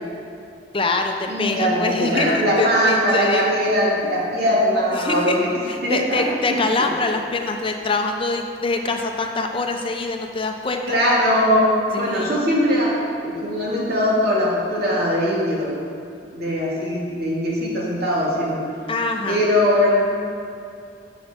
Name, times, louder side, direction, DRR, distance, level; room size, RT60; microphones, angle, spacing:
voice 1, 0.7-3.5 4.9-5.4 5.7-11.0 11.9-12.3 18.9-19.4, left 3 dB, 30° left, 4 dB, 0.6 m, -24 dB
voice 2, 1.3-5.5 5.8-6.3 6.8-6.9 10.9-15.7 16.3-18.6 19.3-20.0, equal, 60° right, -5 dB, 2.5 m, -20 dB
13.5 x 6.8 x 4.4 m, 2.5 s
head